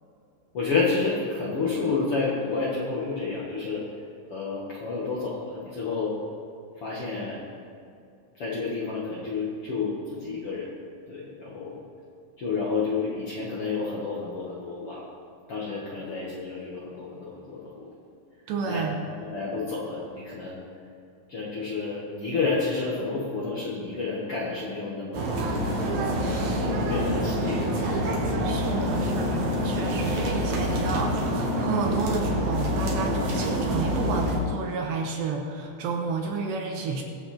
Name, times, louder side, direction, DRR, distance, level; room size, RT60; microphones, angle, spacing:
voice 1, 0.5-3.8 4.3-6.1 6.8-7.4 8.4-10.6 11.1-11.8 12.4-15.0 15.5-17.9 18.6-18.9 19.2-20.6 21.3-25.4 26.1-27.7 28.0-28.3, left 4 dB, 90° left, -7 dB, 1.2 m, -30 dB
voice 2, 18.5-19.1 28.4-37.0, right 4 dB, 75° right, 1 dB, 2.9 m, -31 dB
sound 1, 25.1-34.4, equal, 60° right, 2.9 m, -26 dB
22.0 x 7.6 x 4.4 m, 2.5 s
omnidirectional pair, 5.6 m